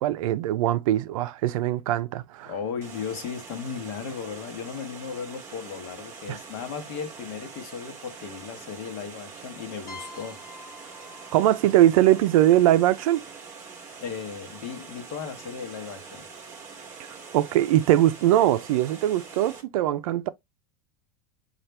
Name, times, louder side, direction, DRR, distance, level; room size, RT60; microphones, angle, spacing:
voice 1, 0.0-2.5 6.3-6.4 11.3-13.2 17.3-20.3, right 13 dB, 65° right, 0.5 m, -21 dB
voice 2, 2.5-10.4 14.0-16.3, left 6 dB, 45° left, 1.1 m, -36 dB
Water, 2.8-19.6, right 5 dB, 15° right, 1.1 m, -44 dB
sound 1, 9.9-13.5, left 3 dB, 15° left, 0.8 m, -48 dB
5.7 x 2.5 x 3.2 m
supercardioid pair, 175°, 19 cm